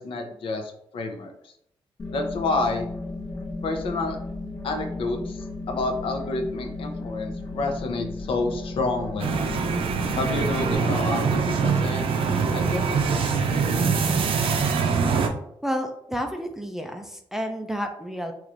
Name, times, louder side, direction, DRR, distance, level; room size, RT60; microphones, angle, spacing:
voice 1, 0.0-1.5 2.1-2.9 3.6-4.2 4.6-9.3 10.2-12.1 12.5-13.9, left 3 dB, 70° left, 3 dB, 0.7 m, -29 dB
sound 1, 2.0-10.7, left 2 dB, 35° left, 0.8 m, -35 dB
sound 2, 9.2-15.3, right 5 dB, 70° right, 0.5 m, -23 dB
voice 2, 15.6-18.3, equal, 5° right, 4 dB, 0.3 m, -30 dB
4.6 x 3.1 x 2.5 m, 0.74 s
wide cardioid pair, 160°, 9 cm